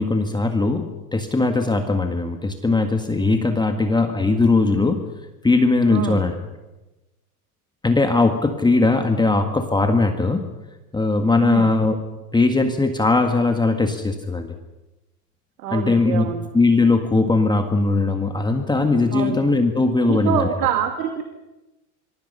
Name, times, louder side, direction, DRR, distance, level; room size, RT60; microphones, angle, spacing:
voice 1, 0.0-5.1 5.4-6.4 7.8-10.5 10.9-12.0 12.3-14.5 15.7-16.3 16.5-20.5, left 3 dB, 10° left, 5 dB, 1.7 m, -19 dB
voice 2, 5.9-6.3 11.4-11.7 15.6-16.5 19.1-19.5 20.0-21.2, right 9 dB, 75° right, 5 dB, 2.4 m, -25 dB
27.0 x 23.0 x 5.7 m, 1.0 s
hypercardioid pair, 110°, 46 cm